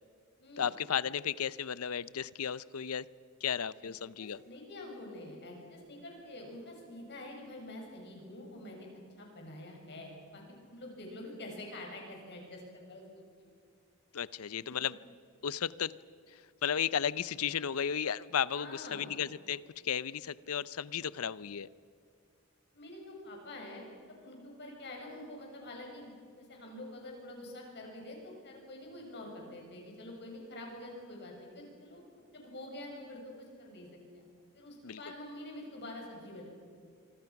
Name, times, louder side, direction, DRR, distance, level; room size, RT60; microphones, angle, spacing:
voice 1, 0.6-3.1 3.4-4.4 14.1-15.0 15.4-15.9 16.3-21.7 34.8-35.0, left 8 dB, 75° left, 18 dB, 0.6 m, -34 dB
voice 2, 4.2-8.9 9.2-13.5 14.5-14.8 18.5-19.1 22.7-32.0 32.3-34.2 34.5-36.5, left 1 dB, 50° left, 1 dB, 6.8 m, -47 dB
26.0 x 25.0 x 5.9 m, 2.1 s
head